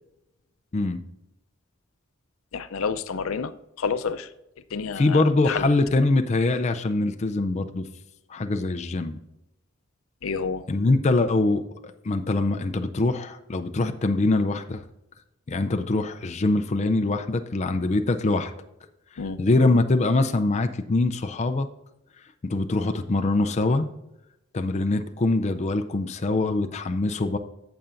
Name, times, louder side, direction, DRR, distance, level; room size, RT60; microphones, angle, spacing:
voice 1, 2.5-3.5 3.8-4.3 4.7-5.7 10.2-10.7 19.2-19.4, left 5 dB, 85° left, 13 dB, 0.5 m, -29 dB
voice 2, 5.0-7.9 8.3-9.2 10.7-11.8 12.0-14.8 15.5-18.5 19.4-21.7 22.4-23.9 24.5-27.4, left 2 dB, 35° left, 7 dB, 0.4 m, -23 dB
14.5 x 6.8 x 2.5 m, 0.90 s
head